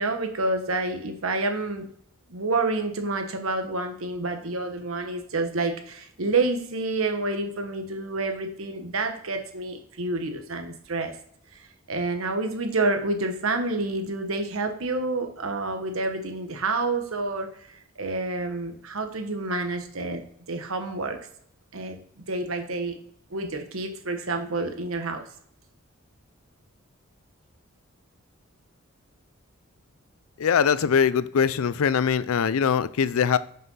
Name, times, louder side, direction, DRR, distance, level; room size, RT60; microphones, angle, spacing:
voice 1, 0.0-1.9 2.3-11.2 11.9-20.2 20.5-21.2 21.7-23.0 23.3-25.3, right 3 dB, 80° right, 1.2 m, -28 dB
voice 2, 30.4-33.4, left 7 dB, 85° left, 0.4 m, -22 dB
5.8 x 5.5 x 5.5 m
head